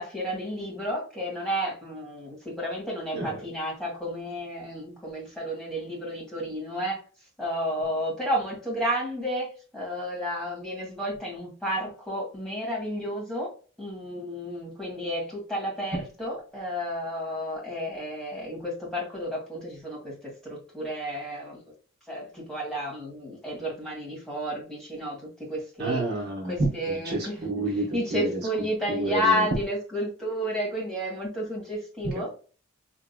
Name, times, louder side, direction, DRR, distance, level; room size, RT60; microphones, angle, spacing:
voice 1, 0.0-7.0 7.4-9.5 9.7-13.5 13.8-20.1 20.4-21.6 22.1-26.0 26.4-27.5 27.9-32.3, equal, ahead, -4 dB, 1.7 m, -31 dB
voice 2, 25.8-26.7 27.0-28.4 28.9-29.4 32.1-32.3, right 2 dB, 50° right, -1 dB, 1.1 m, -29 dB
3.5 x 2.9 x 2.3 m, 0.37 s
head